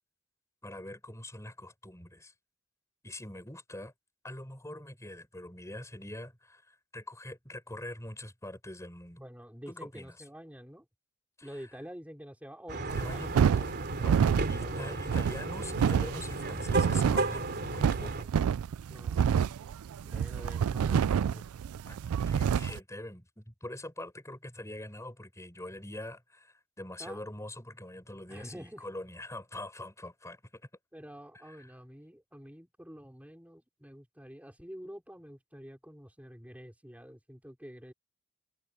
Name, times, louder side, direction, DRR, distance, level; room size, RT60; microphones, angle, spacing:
voice 1, 0.6-2.3 3.0-3.9 4.2-9.2 9.7-10.2 11.4-11.7 12.9-14.2 14.5-18.3 21.9-22.0 22.3-30.6 31.4-31.7, left 1 dB, 15° left, 7.2 m, -44 dB
voice 2, 9.2-10.8 11.4-13.5 14.6-15.2 18.9-19.6 20.0-21.4 27.0-27.2 28.3-28.8 30.9-37.9, equal, 5° right, 4.9 m, -48 dB
sound 1, 12.7-18.2, right 2 dB, 50° right, 3.3 m, -34 dB
sound 2, 12.9-22.8, right 7 dB, 85° right, 0.4 m, -28 dB
head